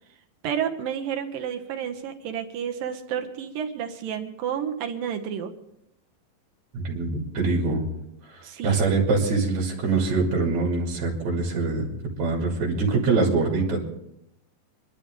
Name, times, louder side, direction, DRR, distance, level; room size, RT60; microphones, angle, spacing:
voice 1, 0.4-5.5 8.4-8.8, right 8 dB, 80° right, 5 dB, 2.7 m, -30 dB
voice 2, 6.7-7.8 8.3-11.9 12.2-13.8, right 3 dB, 55° right, -1 dB, 3.9 m, -24 dB
25.5 x 12.0 x 3.7 m, 0.81 s
omnidirectional pair, 4.0 m